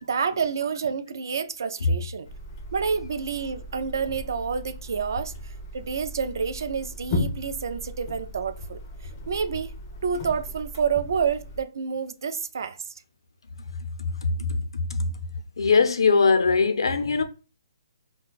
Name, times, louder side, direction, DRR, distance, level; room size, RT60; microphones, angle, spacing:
voice 1, 0.0-2.3 2.7-5.3 5.7-8.8 9.3-9.7 10.0-12.8, right 6 dB, 50° right, 0.3 m, -28 dB
sound 1, 2.2-11.6, left 1 dB, 20° left, 0.4 m, -36 dB
voice 2, 14.2-15.1 15.6-17.2, left 4 dB, 90° left, 0.5 m, -21 dB
2.4 x 2.2 x 3.8 m
hypercardioid pair, 180°, 3 cm